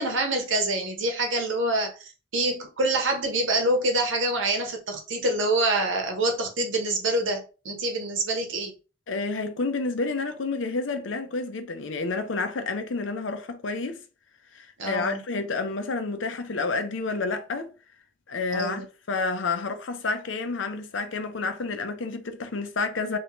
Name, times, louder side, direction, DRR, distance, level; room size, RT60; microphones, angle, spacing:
voice 1, 0.0-8.7 14.8-15.2 18.5-18.8, right 2 dB, 90° right, 1.0 m, -26 dB
voice 2, 9.1-14.0 14.5-17.7 18.3-18.8 19.1-23.2, left 3 dB, 85° left, 0.6 m, -29 dB
3.3 x 2.8 x 2.9 m
head